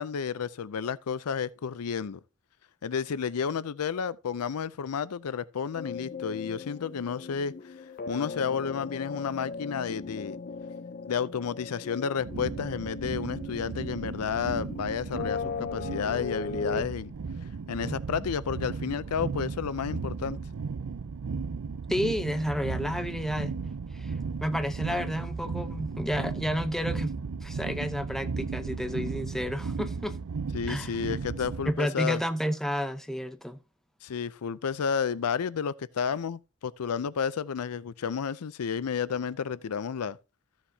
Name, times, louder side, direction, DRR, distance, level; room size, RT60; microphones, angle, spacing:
voice 1, 0.0-2.2 2.8-7.7 8.1-10.4 11.0-17.1 17.7-20.4 30.5-32.2 34.0-40.2, left 6 dB, 90° left, 0.5 m, -31 dB
sound 1, 5.7-16.8, left 4 dB, 40° left, 0.5 m, -38 dB
sound 2, 12.2-31.7, right 5 dB, 70° right, 0.5 m, -35 dB
voice 2, 21.9-23.6 23.9-24.1 24.4-27.1 27.4-30.2 30.7-31.0 31.6-33.6, equal, ahead, 0.7 m, -31 dB
14.0 x 7.2 x 2.7 m
head